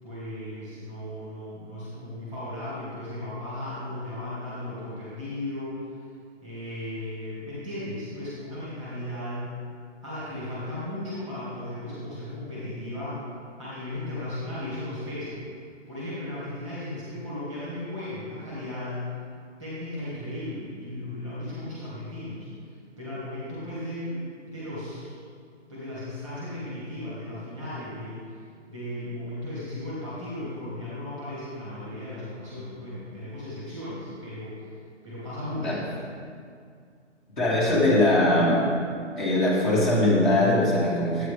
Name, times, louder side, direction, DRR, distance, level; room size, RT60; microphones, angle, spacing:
voice 1, 0.0-6.1 6.4-9.5 10.0-13.2 13.6-15.4 15.9-19.1 19.6-25.1 25.7-34.7 35.0-35.8, left 1 dB, 5° left, -10 dB, 1.5 m, -36 dB
voice 2, 37.4-38.6 39.2-41.3, left 1 dB, 40° left, -8 dB, 2.4 m, -21 dB
10.5 x 8.3 x 3.3 m, 2.2 s
hypercardioid pair, 175°, 35 cm